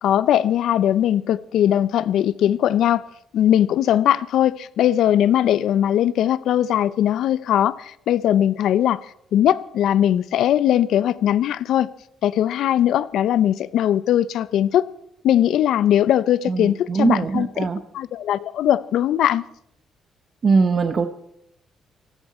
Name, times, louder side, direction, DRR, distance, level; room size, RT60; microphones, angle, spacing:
voice 1, 0.0-3.0 3.3-9.0 9.3-11.9 12.2-14.9 15.2-17.7 17.9-19.5, left 11 dB, 75° left, 0.5 m, -20 dB
voice 2, 16.5-17.8 20.4-21.1, right 4 dB, 45° right, 0.9 m, -21 dB
19.5 x 14.5 x 4.3 m
cardioid pair, 90°, 0 cm